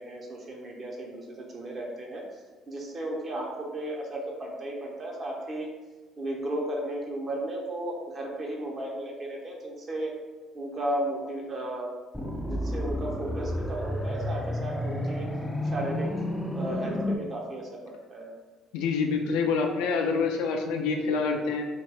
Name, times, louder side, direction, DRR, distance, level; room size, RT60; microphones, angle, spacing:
voice 1, 0.0-2.4 2.7-5.7 6.2-10.2 10.5-11.9 12.2-15.3 15.6-16.1 16.5-18.3, right 1 dB, 45° right, -1 dB, 0.8 m, -34 dB
sound 1, 12.1-17.1, left 1 dB, 5° left, 0.4 m, -31 dB
voice 2, 18.7-21.7, left 4 dB, 85° left, 3 dB, 0.4 m, -26 dB
3.1 x 2.4 x 3.3 m, 1.3 s
supercardioid pair, 70°, 0 cm